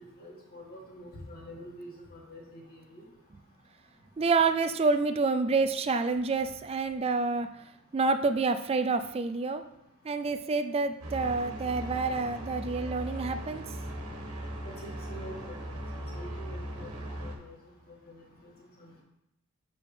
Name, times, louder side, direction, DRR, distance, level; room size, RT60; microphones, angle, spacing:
voice 1, 0.2-3.1 14.8-15.8 16.1-17.6 18.1-18.2 18.4-18.5 18.8-19.0, equal, 45° left, -3 dB, 2.0 m, -46 dB
voice 2, 4.2-7.5 7.9-9.6 10.0-13.6, right 4 dB, 25° right, 9 dB, 0.3 m, -28 dB
sound 1, 11.0-17.4, equal, 90° right, 1.4 m, -38 dB
6.8 x 6.2 x 3.3 m, 0.84 s
head